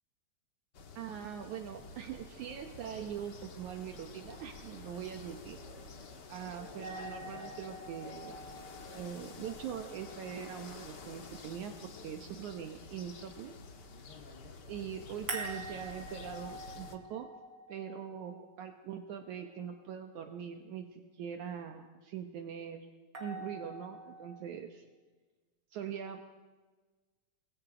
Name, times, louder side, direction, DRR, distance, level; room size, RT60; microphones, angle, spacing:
sound 1, 0.7-17.0, left 4 dB, 45° left, 1.5 m, -50 dB
voice 1, 1.0-5.9 6.3-8.4 8.9-13.5 14.7-17.3 17.7-22.9 23.2-24.9 25.7-26.3, right 8 dB, 70° right, 6 dB, 2.3 m, -42 dB
sound 2, 1.8-7.8, right 3 dB, 55° right, 3.2 m, -56 dB
sound 3, 6.8-11.8 15.3-19.4 23.1-24.3, right 2 dB, 35° right, 4.1 m, -46 dB
29.0 x 21.5 x 5.0 m, 1.3 s
omnidirectional pair, 3.9 m